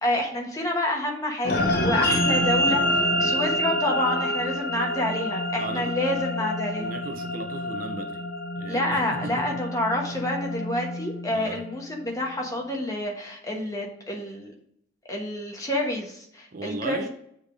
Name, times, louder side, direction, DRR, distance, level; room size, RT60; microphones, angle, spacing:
voice 1, 0.0-6.9 8.7-14.5 15.1-17.1, left 1 dB, 15° left, 1.1 m, -28 dB
sound 1, 1.4-12.1, left 1 dB, 50° left, 1.0 m, -27 dB
voice 2, 1.9-2.3 5.5-6.2 6.8-8.2 8.5-9.6 11.3-11.6 16.5-17.1, right 3 dB, 45° right, 0.5 m, -37 dB
7.3 x 3.4 x 5.0 m
head